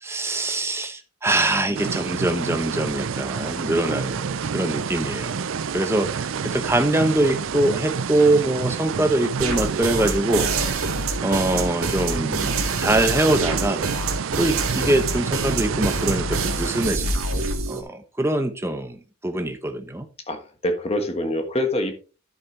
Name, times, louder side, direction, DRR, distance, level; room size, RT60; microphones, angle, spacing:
voice 1, 0.0-5.4 5.7-10.5 11.2-13.8 14.4-17.2 17.7-20.1, right 1 dB, 10° right, 0.9 m, -23 dB
sound 1, 1.7-16.9, right 6 dB, 70° right, 0.5 m, -29 dB
sound 2, 9.4-17.8, right 3 dB, 85° right, 2.0 m, -26 dB
voice 2, 20.3-21.9, left 1 dB, 30° left, 1.4 m, -25 dB
11.0 x 6.6 x 3.3 m
head